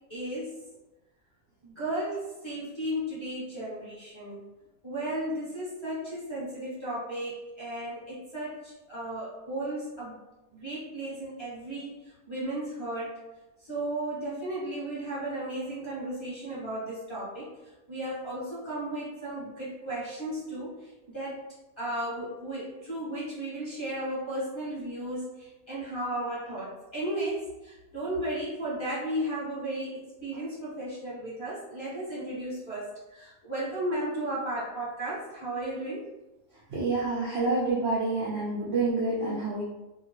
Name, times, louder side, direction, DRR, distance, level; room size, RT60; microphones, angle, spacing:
voice 1, 0.1-0.6 1.6-4.4 4.8-10.2 10.5-12.0 12.3-13.2 13.6-17.5 17.9-21.4 21.8-36.0, right 1 dB, 25° left, -9 dB, 0.6 m, -34 dB
voice 2, 36.7-39.6, right 3 dB, 85° right, -4 dB, 0.5 m, -28 dB
2.9 x 2.2 x 2.9 m, 1.0 s
omnidirectional pair, 1.7 m